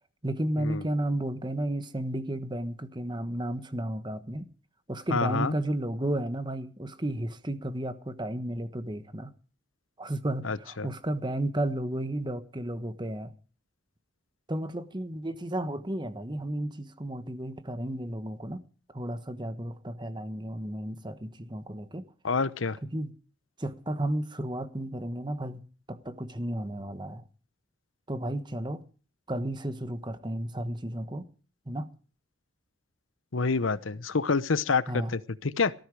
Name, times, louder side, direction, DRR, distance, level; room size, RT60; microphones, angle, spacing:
voice 1, 0.2-4.4 4.9-9.3 10.0-13.3 14.5-18.6 18.9-22.0 22.9-23.1 23.6-25.6 25.9-27.2 28.1-28.8 29.3-31.2 31.7-31.9 34.9-35.1, right 1 dB, 20° right, 1.2 m, -33 dB
voice 2, 5.1-5.5 10.4-10.9 22.2-22.8 33.3-35.7, left 4 dB, 75° left, 0.9 m, -27 dB
18.0 x 13.5 x 4.8 m
head